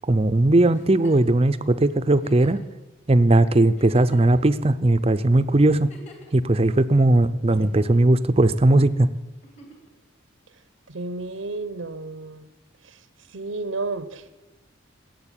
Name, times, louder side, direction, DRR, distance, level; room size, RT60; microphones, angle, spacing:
voice 1, 0.1-2.6 3.1-5.9 6.3-9.1, right 2 dB, 30° right, 13 dB, 0.6 m, -18 dB
Giggle, 0.7-1.3 2.2-2.7 3.3-3.4 3.7-4.5 5.7-6.3 7.5-8.1 9.4-9.9 11.4-11.5, right 1 dB, 35° left, 2.9 m, -45 dB
voice 2, 10.9-12.5 12.8-13.0 13.3-14.3, right 3 dB, 80° right, 13 dB, 0.8 m, -32 dB
16.5 x 7.8 x 8.9 m, 1.1 s
head